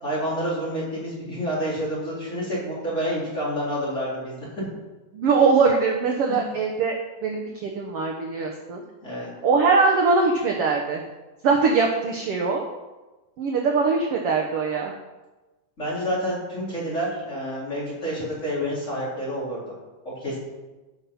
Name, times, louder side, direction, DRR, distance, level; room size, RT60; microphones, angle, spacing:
voice 1, 0.0-4.7 6.3-6.4 9.0-9.3 15.8-19.7 20.0-20.4, equal, 20° left, -7 dB, 4.1 m, -28 dB
voice 2, 5.1-7.0 7.2-8.8 9.4-11.0 11.4-12.6 13.4-14.9, right 4 dB, 65° right, 1 dB, 1.5 m, -22 dB
14.0 x 5.9 x 5.5 m, 1.2 s
omnidirectional pair, 3.7 m